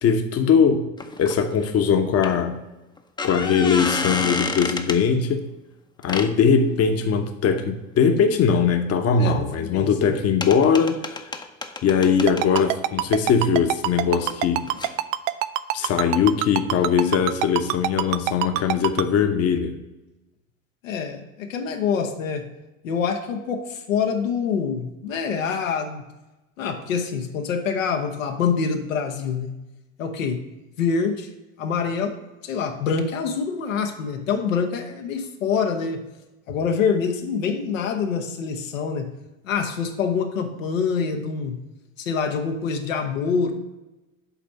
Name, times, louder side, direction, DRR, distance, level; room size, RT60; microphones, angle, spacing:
voice 1, 0.0-0.9 1.2-2.6 3.2-5.4 6.0-11.2 11.8-14.7 15.7-19.7, left 6 dB, 40° left, 7 dB, 0.9 m, -20 dB
sound 1, 1.0-1.8 2.2-2.3 3.0-5.0 6.0-6.3 9.5-9.6 9.9-10.0 10.4-12.7 14.2-14.4 14.7-14.9, left 3 dB, 10° left, 0.6 m, -29 dB
voice 2, 9.2-10.1 20.8-22.5 22.8-26.0 26.6-29.5 30.0-30.4 30.8-31.3 31.6-32.1 32.4-36.0 36.5-39.1 39.4-41.6 42.0-43.5, left 6 dB, 85° left, 4 dB, 1.1 m, -25 dB
Ringtone, 12.3-19.0, right 14 dB, 70° right, 0.5 m, -23 dB
8.4 x 3.4 x 5.5 m, 1.0 s
hypercardioid pair, 80°, 38 cm